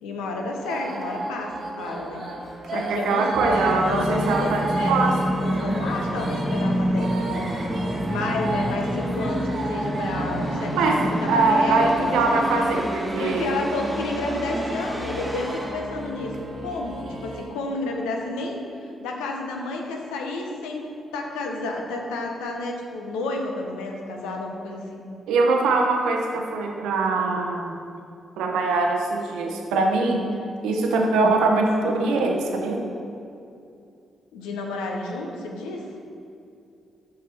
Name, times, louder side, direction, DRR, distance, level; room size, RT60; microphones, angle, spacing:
voice 1, 0.0-1.5 1.8-2.2 2.7-7.5 8.1-12.7 13.2-18.6 19.0-20.8 21.1-25.1 34.3-35.9, left 2 dB, 90° left, 1 dB, 0.8 m, -31 dB
Carnatic varnam by Sreevidya in Abhogi raaga, 0.6-17.5, right 2 dB, 60° right, 1.3 m, -34 dB
voice 2, 2.7-5.2 10.7-13.5 25.3-27.8 28.4-30.3 30.6-32.8, right 3 dB, 85° right, 2 dB, 0.7 m, -22 dB
Musical instrument, 3.3-17.0, equal, 10° right, 1.1 m, -28 dB
6.8 x 5.7 x 3.3 m, 2.6 s
supercardioid pair, 50°, 0 cm